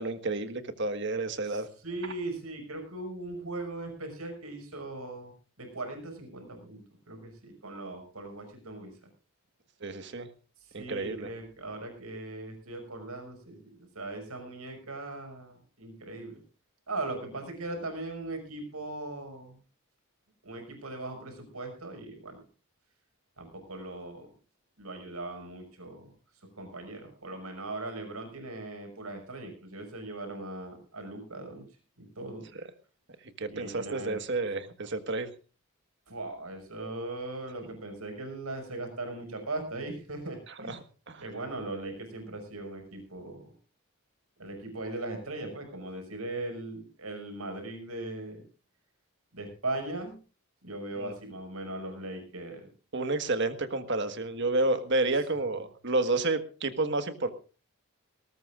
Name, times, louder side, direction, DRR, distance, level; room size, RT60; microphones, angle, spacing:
voice 1, 0.0-1.7 9.8-10.3 10.7-11.3 33.4-35.3 40.7-41.2 51.0-51.1 52.9-57.3, right 2 dB, 55° right, 9 dB, 1.6 m, -30 dB
voice 2, 1.8-5.3 5.6-8.9 10.8-16.4 16.9-19.6 20.4-22.4 23.4-24.3 24.8-26.1 26.6-31.6 32.0-32.5 33.5-34.2 36.1-40.8 41.2-43.5 44.4-48.4 49.3-50.2 50.6-52.7, right 2 dB, 85° right, 5 dB, 6.0 m, -39 dB
20.0 x 18.5 x 2.5 m, 0.34 s
head